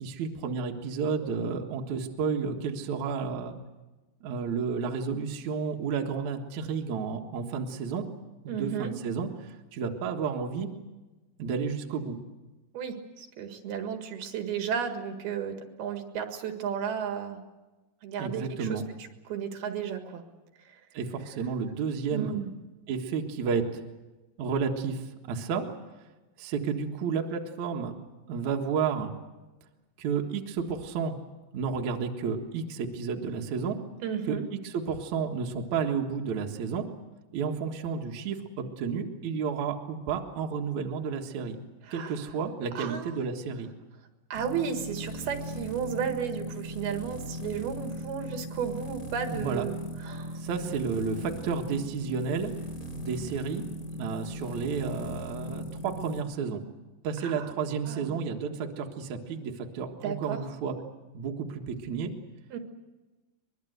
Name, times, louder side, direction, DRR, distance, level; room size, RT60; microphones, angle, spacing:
voice 1, 0.0-3.6 4.2-8.1 8.4-10.7 11.4-12.2 18.2-18.8 20.9-22.4 22.9-23.8 24.4-25.7 26.4-28.0 28.3-29.1 30.0-31.1 31.5-33.8 34.3-36.9 37.3-41.6 41.9-43.7 49.3-49.6 50.4-52.5 53.0-53.6 53.9-56.6 57.0-60.7 61.1-62.1, right 6 dB, 55° right, 2 dB, 2.6 m, -31 dB
voice 2, 8.5-8.9 12.7-17.4 18.0-18.8 19.3-20.2 22.1-22.5 34.0-34.4 41.9-42.2 42.8-43.1 44.3-50.4 57.2-57.5 57.9-58.2 60.0-60.4 62.5-62.6, right 7 dB, 75° right, 5 dB, 3.6 m, -33 dB
sound 1, 44.3-56.2, equal, 20° left, 4.1 m, -38 dB
23.5 x 22.0 x 8.1 m, 1.1 s
omnidirectional pair, 4.6 m